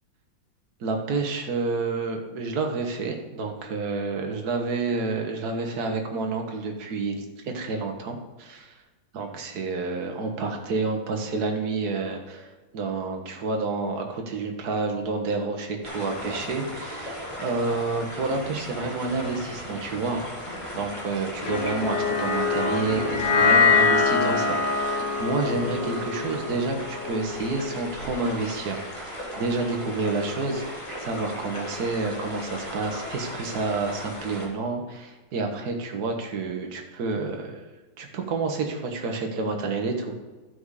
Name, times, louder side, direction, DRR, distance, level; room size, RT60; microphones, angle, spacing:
voice 1, 0.8-8.7 9.1-20.2 20.7-30.6 31.0-37.6 38.0-40.1, right 3 dB, 55° right, 3 dB, 1.7 m, -29 dB
sound 1, 15.8-34.5, equal, 15° left, 2.1 m, -37 dB
sound 2, 21.5-27.8, left 4 dB, 70° left, 2.0 m, -24 dB
13.0 x 6.2 x 4.9 m, 1.2 s
omnidirectional pair, 2.0 m